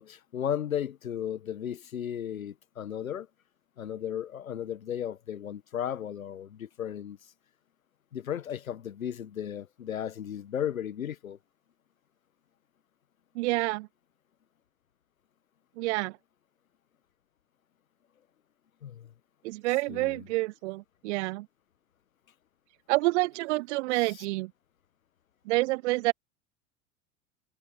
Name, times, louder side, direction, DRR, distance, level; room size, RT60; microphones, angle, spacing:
voice 1, 0.0-3.3 3.8-7.2 8.1-11.4 18.8-19.1 19.9-20.2, left 9 dB, 80° left, 1.2 m, -35 dB
voice 2, 13.3-13.9 15.8-16.2 19.4-21.5 22.9-24.5 25.5-26.1, right 21 dB, 55° right, 0.8 m, -28 dB
figure-of-eight pair, 80°, 41 cm